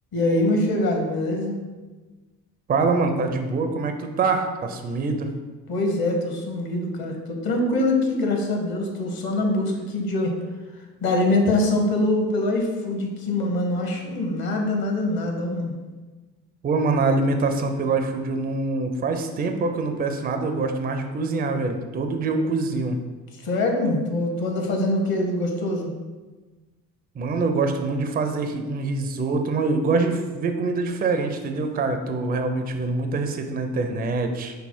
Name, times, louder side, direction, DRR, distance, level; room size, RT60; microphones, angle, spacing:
voice 1, 0.1-1.6 5.7-10.3 11.0-15.7 23.3-25.9, left 2 dB, 50° left, 2 dB, 1.2 m, -24 dB
voice 2, 2.7-5.3 16.6-23.0 27.2-34.5, right 3 dB, 20° right, 6 dB, 0.4 m, -24 dB
5.5 x 2.0 x 4.4 m, 1.3 s
hypercardioid pair, 55°, 47 cm